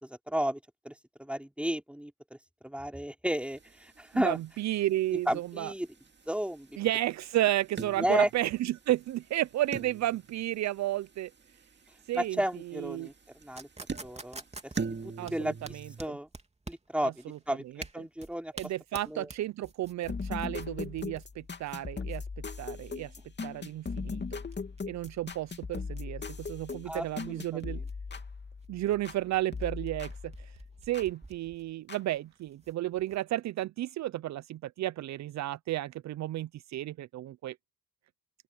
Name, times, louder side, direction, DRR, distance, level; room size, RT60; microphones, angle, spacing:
voice 1, 0.0-2.4 2.6-4.4 5.1-5.9 6.3-6.8 8.0-8.3 12.1-13.1 13.4-16.3 16.7-17.7 17.9-18.5 19.1-19.3 26.9-27.8, right 1 dB, 5° right, 3.7 m, -33 dB
sound 1, 3.3-16.1, right 5 dB, 35° right, 2.3 m, -44 dB
voice 2, 4.1-5.7 6.8-11.3 12.1-12.4 12.7-13.1 15.2-15.9 17.0-17.4 18.5-22.2 22.6-23.1 23.4-24.4 24.9-27.8 28.7-30.3 30.9-37.6, right 14 dB, 65° right, 0.6 m, -32 dB
sound 2, 13.6-33.2, right 3 dB, 20° right, 3.1 m, -49 dB
sound 3, 20.1-29.2 29.5-31.1 31.9-32.0, left 4 dB, 35° left, 3.0 m, -39 dB
open air
supercardioid pair, 55°, 29 cm